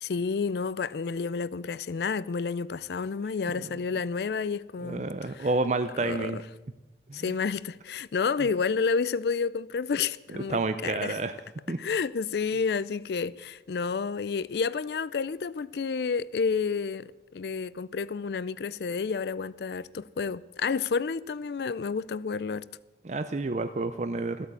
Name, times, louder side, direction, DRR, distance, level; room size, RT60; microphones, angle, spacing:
voice 1, 0.0-5.5 5.9-6.4 7.1-11.2 11.8-22.7, left 5 dB, 65° left, 0.4 m, -30 dB
voice 2, 4.8-6.4 7.1-7.2 10.3-11.3 11.7-11.8 23.0-24.5, right 3 dB, 40° right, 0.5 m, -29 dB
15.0 x 8.7 x 8.2 m
head